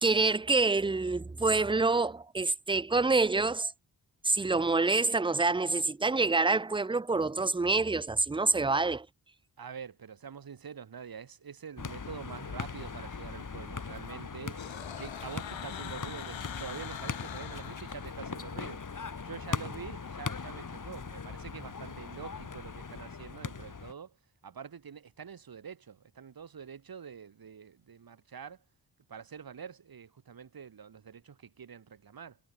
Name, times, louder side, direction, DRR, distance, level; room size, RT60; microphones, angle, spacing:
voice 1, 0.0-3.7 4.2-9.1, right 3 dB, 10° right, 0.6 m, -27 dB
voice 2, 9.6-14.6 15.0-18.8 19.2-24.2 24.4-28.6 29.1-32.4, right 7 dB, 50° right, 1.8 m, -46 dB
sound 1, 11.8-23.9, left 5 dB, 40° left, 2.7 m, -40 dB
sound 2, 14.6-18.6, left 10 dB, 75° left, 1.8 m, -44 dB
supercardioid pair, 40°, 47 cm